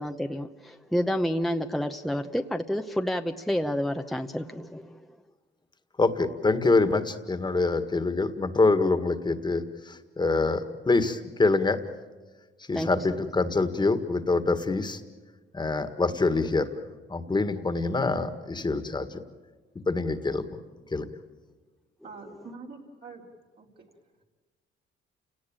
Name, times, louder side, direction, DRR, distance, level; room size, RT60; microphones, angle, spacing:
voice 1, 0.0-5.0 12.7-13.1, equal, ahead, 5 dB, 0.9 m, -29 dB
voice 2, 6.0-11.8 12.7-15.0 15.5-16.7 17.1-19.2 19.9-20.4 20.9-21.0, left 3 dB, 20° left, 10 dB, 1.8 m, -25 dB
voice 3, 22.0-23.3 23.6-23.9, right 4 dB, 55° right, -2 dB, 3.6 m, -45 dB
29.5 x 18.5 x 8.9 m, 1.3 s
cardioid pair, 90°, 20 cm